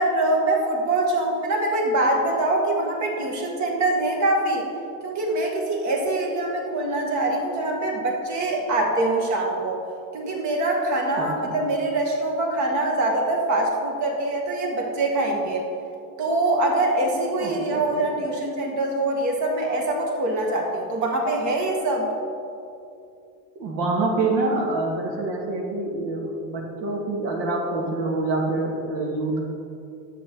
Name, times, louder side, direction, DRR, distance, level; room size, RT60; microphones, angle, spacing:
voice 1, 0.0-4.7 5.0-9.8 10.1-15.7 16.2-22.1, right 2 dB, 40° right, 0 dB, 2.1 m, -24 dB
voice 2, 11.2-11.6 17.4-17.8 23.6-29.4, right 2 dB, 60° right, 0 dB, 2.2 m, -26 dB
10.5 x 7.6 x 3.8 m, 2.6 s
supercardioid pair, 110°, 42 cm